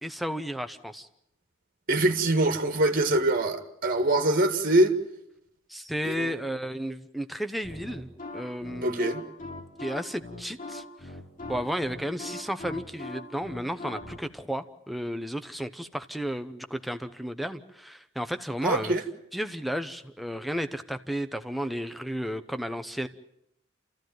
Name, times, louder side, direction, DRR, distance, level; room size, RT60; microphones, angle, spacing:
voice 1, 0.0-1.1 5.7-8.1 8.3-9.2 9.8-11.1 11.5-19.0 19.3-23.1, equal, ahead, 0.9 m, -33 dB
voice 2, 1.9-4.9 6.0-6.5 8.8-9.2 18.6-19.0, right 1 dB, 45° right, 2.0 m, -24 dB
sound 1, 7.6-14.2, left 2 dB, 40° left, 3.0 m, -40 dB
28.5 x 15.0 x 9.4 m
head